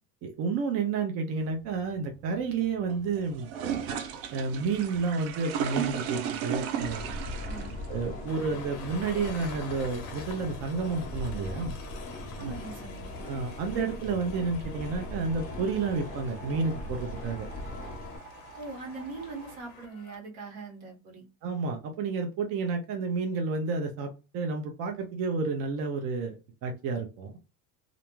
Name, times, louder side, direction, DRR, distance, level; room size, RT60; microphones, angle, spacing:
voice 1, 0.2-3.5 4.3-7.1 7.9-11.8 12.3-12.5 13.2-17.5 21.4-27.3, right 4 dB, 40° right, 0.4 m, -31 dB
sound 1, 1.4-19.6, right 8 dB, 85° right, 0.6 m, -39 dB
sound 2, 6.8-18.2, left 2 dB, 20° left, 0.4 m, -40 dB
Train, 8.3-20.2, left 6 dB, 55° left, 0.7 m, -48 dB
voice 2, 12.4-13.2 18.6-21.2, right 3 dB, 70° right, 1.2 m, -41 dB
2.4 x 2.2 x 2.9 m
cardioid pair, 160°, 38 cm